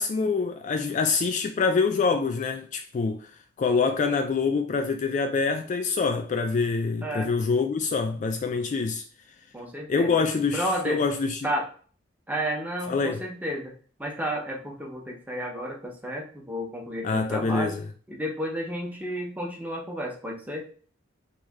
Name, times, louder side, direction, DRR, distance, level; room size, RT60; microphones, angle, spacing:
voice 1, 0.0-3.3 3.6-9.0 9.9-11.5 12.9-13.2 17.0-17.8, left 4 dB, 40° left, 0.3 m, -25 dB
voice 2, 9.5-10.3 10.5-11.0 11.4-11.7 12.3-13.7 14.0-17.8 18.1-20.7, equal, 10° right, 0.8 m, -32 dB
3.2 x 2.6 x 3.6 m
head